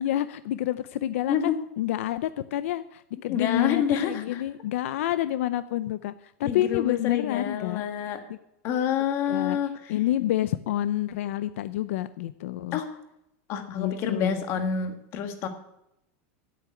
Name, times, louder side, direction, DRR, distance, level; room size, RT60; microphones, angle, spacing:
voice 1, 0.0-7.8 8.3-8.4 9.3-9.6 9.9-12.8 13.7-14.4, left 13 dB, 80° left, 13 dB, 0.6 m, -28 dB
voice 2, 3.3-4.4 6.4-8.2 8.6-9.9 12.7-13.0 13.5-15.5, left 8 dB, 40° left, 7 dB, 1.7 m, -28 dB
9.2 x 8.8 x 9.6 m, 0.82 s
supercardioid pair, 165°, 7 cm